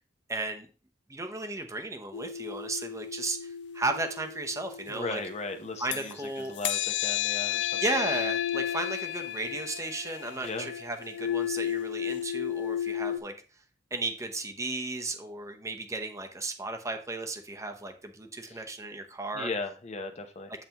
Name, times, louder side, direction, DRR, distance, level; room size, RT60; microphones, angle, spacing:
voice 1, 0.3-0.7 1.1-5.2 5.8-6.5 7.8-13.3 13.9-19.5, right 2 dB, 15° right, 5 dB, 0.8 m, -34 dB
sound 1, 2.1-6.1 6.6-13.2, left 10 dB, 85° left, 0.5 m, -33 dB
voice 2, 4.9-7.8 10.4-10.7 18.5-18.6 19.3-20.5, left 3 dB, 40° left, 6 dB, 0.8 m, -37 dB
8.3 x 5.6 x 3.0 m, 0.36 s
head